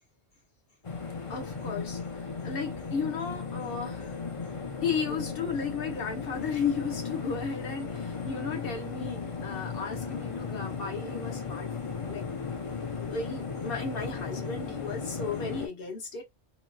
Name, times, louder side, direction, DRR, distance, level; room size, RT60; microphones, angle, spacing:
sound 1, 0.8-15.7, left 5 dB, 40° left, 0.5 m, -36 dB
voice 1, 1.3-2.1 2.4-4.2 4.8-12.2 13.0-16.2, left 5 dB, 55° left, 1.0 m, -34 dB
3.0 x 2.3 x 2.5 m
omnidirectional pair, 1.2 m